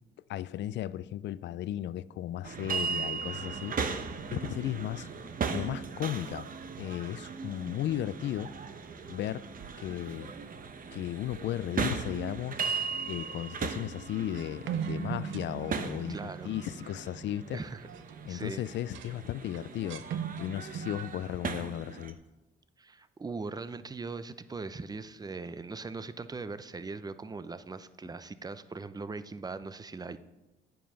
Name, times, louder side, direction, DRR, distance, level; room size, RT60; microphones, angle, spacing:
voice 1, 0.3-3.8 4.3-5.1 5.5-6.5 6.8-8.5 9.1-9.4 9.8-10.3 10.9-17.6 18.3-20.1 20.4-22.2, left 12 dB, 65° left, 0.4 m, -35 dB
sound 1, 2.4-22.1, right 5 dB, 45° right, 0.9 m, -38 dB
sound 2, 14.3-18.3 18.7-19.1 19.5-21.0, right 7 dB, 80° right, 0.8 m, -39 dB
voice 2, 16.1-16.5 17.5-17.9 18.3-18.6 22.8-30.2, right 4 dB, 20° right, 0.6 m, -40 dB
9.0 x 7.6 x 5.6 m
cardioid pair, 90°, 20 cm